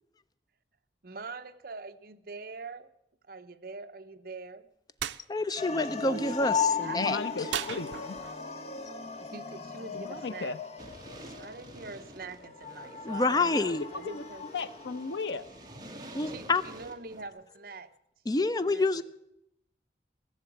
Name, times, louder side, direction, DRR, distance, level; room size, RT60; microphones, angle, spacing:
voice 1, 1.0-2.9 3.3-4.7 6.0-7.6 9.2-10.5 11.4-14.4 16.2-17.9 18.3-19.0, right 3 dB, 55° right, 9 dB, 0.8 m, -44 dB
sound 1, 5.0-5.2 7.5-8.5, right 10 dB, 85° right, 0.5 m, -35 dB
voice 2, 5.3-7.2 13.0-13.8 16.1-16.6 18.3-19.0, left 3 dB, 20° left, 13 dB, 0.4 m, -27 dB
sound 2, 5.6-15.7, left 5 dB, 35° left, 0.9 m, -37 dB
voice 3, 6.9-8.2 9.9-10.6 13.9-14.2 14.5-15.4, left 4 dB, 80° left, 12 dB, 0.7 m, -36 dB
sound 3, 10.8-17.3, right 1 dB, 25° right, 1.6 m, -49 dB
16.0 x 6.9 x 8.6 m, 0.81 s
head